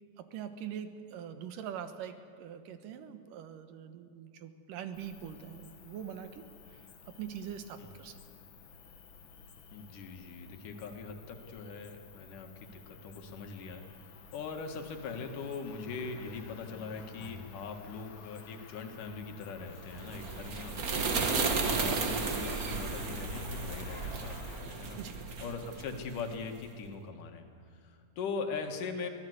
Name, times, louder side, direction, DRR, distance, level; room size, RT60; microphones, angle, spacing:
voice 1, 0.2-6.8 7.2-8.2 24.9-25.2, right 9 dB, 85° right, 9 dB, 2.8 m, -43 dB
Cricket, 4.9-24.6, left 5 dB, 55° left, 1.4 m, -51 dB
voice 2, 9.7-21.0 21.3-25.0 25.4-27.5 27.7-29.1, left 4 dB, 75° left, 4 dB, 3.3 m, -41 dB
sound 1, 19.8-26.4, right 4 dB, 45° right, 1.2 m, -34 dB
23.5 x 17.0 x 8.0 m, 2.4 s
omnidirectional pair, 3.7 m